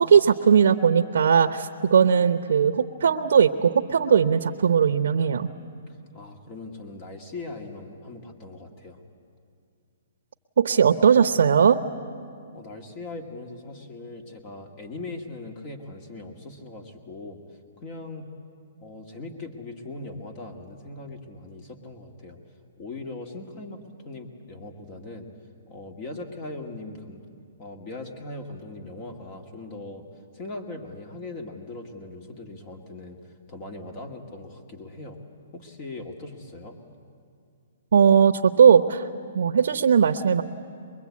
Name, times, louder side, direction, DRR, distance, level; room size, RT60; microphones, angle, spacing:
voice 1, 0.0-5.5 10.6-11.8 37.9-39.0 39.3-40.4, right 7 dB, 75° right, 7 dB, 0.8 m, -18 dB
voice 2, 5.9-9.0 12.5-17.4 17.8-18.3 18.8-22.4 22.8-25.3 25.7-27.2 27.6-30.1 30.3-35.2 35.5-36.8, left 2 dB, 35° left, 3 dB, 1.9 m, -40 dB
23.0 x 22.5 x 8.5 m, 2.3 s
hypercardioid pair, 145°, 0 cm